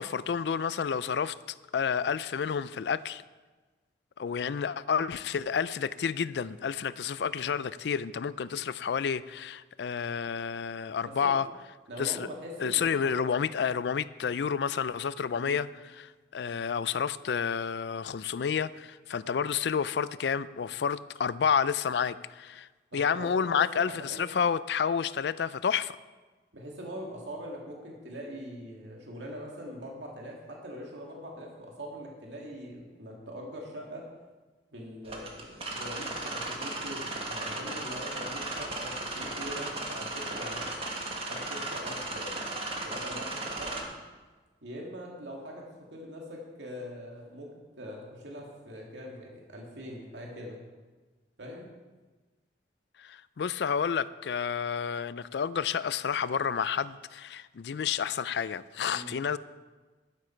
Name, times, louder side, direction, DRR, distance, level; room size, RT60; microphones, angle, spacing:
voice 1, 0.0-1.4 1.7-3.2 4.2-11.5 12.0-12.3 12.6-22.7 22.9-25.9 53.0-59.4, left 7 dB, 70° left, 0.4 m, -30 dB
voice 2, 11.0-11.4 11.9-13.1 15.3-15.6 22.9-24.2 26.5-34.0 34.7-40.7 41.2-43.8 44.6-45.6 45.9-47.5 47.8-50.6 51.4-51.7 58.9-59.2, equal, 85° right, 2.1 m, -42 dB
sound 1, 35.1-43.8, right 2 dB, 35° right, 1.6 m, -36 dB
12.0 x 9.8 x 4.5 m
head